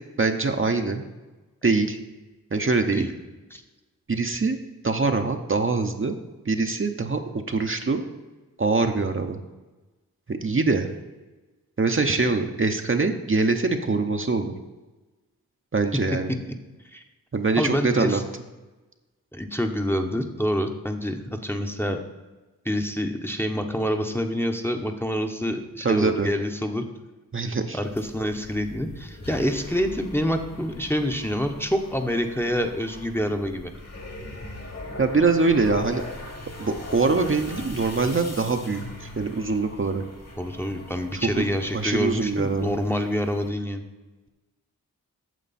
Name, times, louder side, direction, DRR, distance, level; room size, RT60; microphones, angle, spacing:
voice 1, 0.2-1.0 1.6-2.0 2.5-3.1 4.1-4.6 4.8-6.2 6.5-7.2 7.5-8.0 8.6-9.4 10.3-10.9 11.8-14.5 15.7-16.3 17.3-18.2 25.8-26.3 27.3-27.8 35.0-36.0 36.6-38.8 39.2-40.0 41.4-41.5 41.7-42.7, right 3 dB, 35° right, 5 dB, 0.8 m, -23 dB
voice 2, 17.6-18.2 19.3-22.0 22.6-26.8 27.7-33.7 40.4-43.8, equal, 5° left, 4 dB, 0.9 m, -27 dB
sound 1, 27.8-43.5, left 2 dB, 45° left, 1.7 m, -40 dB
9.3 x 6.6 x 4.2 m, 1.2 s
cardioid pair, 45°, 36 cm